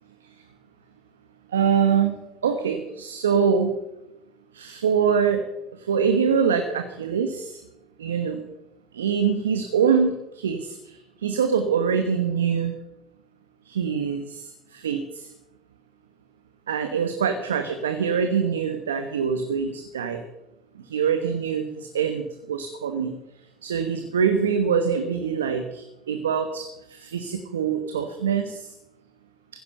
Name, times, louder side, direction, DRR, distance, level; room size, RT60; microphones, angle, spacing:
voice 1, 1.5-2.2 2.4-3.7 4.5-5.4 5.7-7.6 8.0-8.5 8.9-12.7 13.7-15.3 16.7-20.2 20.8-23.1 23.6-28.7, right 6 dB, 85° right, 7 dB, 1.1 m, -24 dB
15.5 x 9.8 x 6.7 m, 0.93 s
hypercardioid pair, 65°, 0 cm